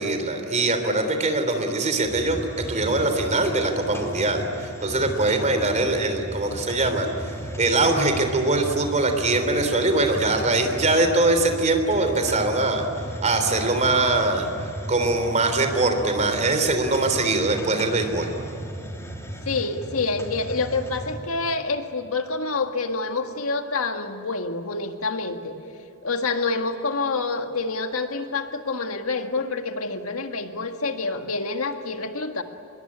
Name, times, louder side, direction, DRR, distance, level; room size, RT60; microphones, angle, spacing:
voice 1, 0.0-2.4 2.7-7.1 7.6-12.8 13.2-14.5 14.9-18.3, right 2 dB, 35° right, 6 dB, 3.4 m, -22 dB
Hiss, 2.0-21.3, equal, 15° left, 3.3 m, -36 dB
voice 2, 5.6-5.9 19.5-25.6 26.0-32.4, left 3 dB, 70° left, 6 dB, 1.8 m, -27 dB
25.5 x 21.5 x 9.9 m, 2.9 s
head